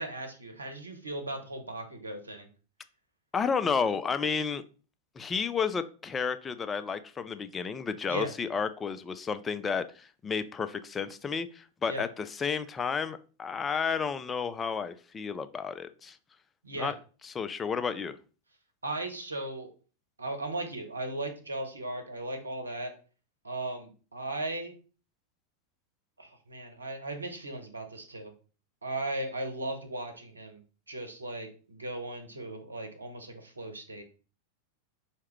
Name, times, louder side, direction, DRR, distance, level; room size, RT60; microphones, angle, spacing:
voice 1, 0.0-2.5 8.1-8.3 11.9-12.0 16.6-16.9 18.8-19.7 20.2-22.9 23.4-24.7 26.2-28.3 28.8-30.6 30.9-34.0, right 2 dB, 80° right, 0.8 m, -37 dB
voice 2, 3.3-4.6 5.2-16.2 16.8-16.9 17.2-18.2, left 6 dB, 20° left, 0.3 m, -32 dB
4.6 x 2.9 x 3.1 m
figure-of-eight pair, 90°, 0 cm